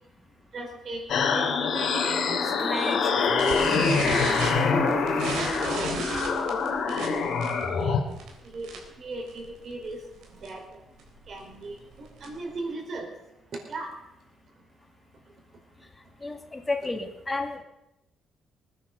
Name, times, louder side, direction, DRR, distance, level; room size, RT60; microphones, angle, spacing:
voice 1, 0.5-1.0 1.3-2.4 2.7-4.0 4.3-5.0 5.6-6.4 6.9-7.5 7.8-8.0 8.4-8.7 9.0-10.0 10.3-10.6 11.3-13.1 13.7-13.9, right 2 dB, 50° right, 2 dB, 5.0 m, -38 dB
sound 1, 1.1-8.0, left 5 dB, 65° left, 2.8 m, -25 dB
sound 2, 2.4-7.8, right 1 dB, 15° right, 2.7 m, -34 dB
sound 3, 3.4-9.0 9.3-9.6 9.8-9.9 10.2-10.5 11.0-12.5, right 4 dB, 85° right, 3.7 m, -35 dB
voice 2, 16.2-17.6, left 3 dB, 20° left, 6 dB, 2.2 m, -31 dB
20.0 x 9.9 x 6.8 m, 0.93 s
cardioid pair, 90°, 0 cm